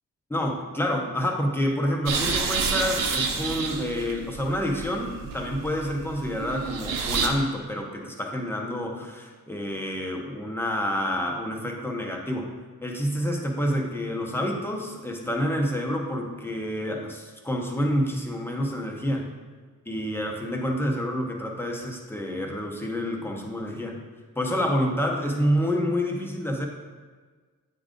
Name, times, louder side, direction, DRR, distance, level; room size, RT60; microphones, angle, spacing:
voice 1, 0.3-12.5 12.8-19.4 19.9-24.0 24.4-26.7, equal, 5° left, 1 dB, 0.8 m, -28 dB
sound 1, 2.1-7.3, right 5 dB, 80° right, 0.8 m, -29 dB
8.5 x 3.8 x 3.7 m, 1.4 s
wide cardioid pair, 130°, 33 cm